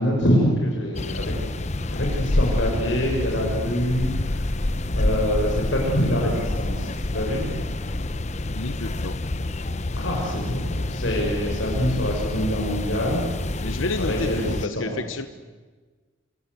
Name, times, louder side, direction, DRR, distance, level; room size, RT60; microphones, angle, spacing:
voice 1, 0.0-1.3 1.9-7.9 9.9-14.9, equal, 65° left, -1 dB, 6.3 m, -26 dB
sound 1, 0.9-14.7, left 2 dB, 35° left, 0.8 m, -27 dB
voice 2, 8.5-9.1 13.6-15.3, left 3 dB, 80° left, 9 dB, 1.2 m, -30 dB
28.0 x 25.5 x 8.1 m, 1.4 s
head